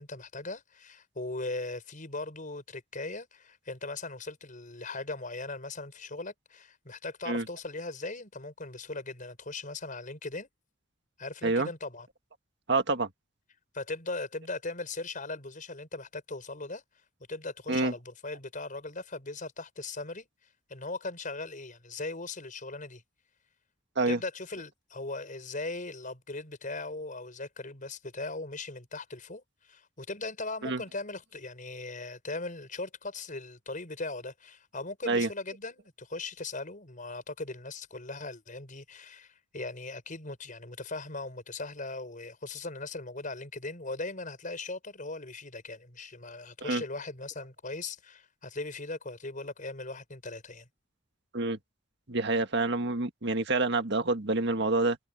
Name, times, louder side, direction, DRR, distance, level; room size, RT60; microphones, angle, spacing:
voice 1, 0.0-10.5 11.2-12.1 13.7-16.8 17.3-20.3 20.7-23.0 24.1-50.7, left 3 dB, 45° left, 6.0 m, -39 dB
voice 2, 12.7-13.1 17.7-17.9 24.0-24.2 30.6-30.8 35.1-35.3 46.7-46.8 51.3-51.6 52.1-55.0, right 3 dB, 60° right, 1.8 m, -27 dB
head